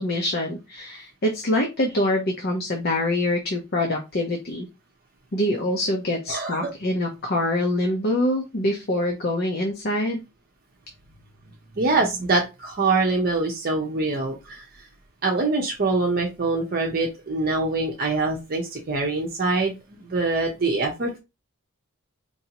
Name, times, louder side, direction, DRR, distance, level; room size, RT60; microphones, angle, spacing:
voice 1, 0.0-4.7 5.3-10.2, left 1 dB, 50° left, 2 dB, 0.7 m, -25 dB
voice 2, 6.3-6.7 11.8-14.7 15.2-21.2, right 3 dB, 45° right, 0 dB, 0.8 m, -24 dB
4.5 x 2.7 x 2.9 m, 0.25 s
head